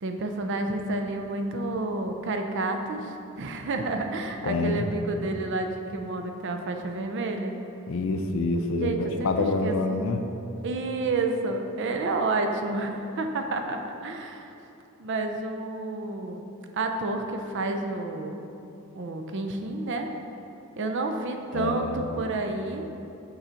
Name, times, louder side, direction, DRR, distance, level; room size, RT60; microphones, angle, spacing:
voice 1, 0.0-7.5 8.8-9.8 10.6-14.5 15.0-16.4 16.7-18.4 18.9-20.1 20.8-22.9, right 2 dB, 55° right, 5 dB, 0.5 m, -30 dB
voice 2, 4.4-4.9 7.9-10.2 21.5-22.1, left 3 dB, 60° left, 6 dB, 0.4 m, -27 dB
7.0 x 3.9 x 4.4 m, 2.8 s
head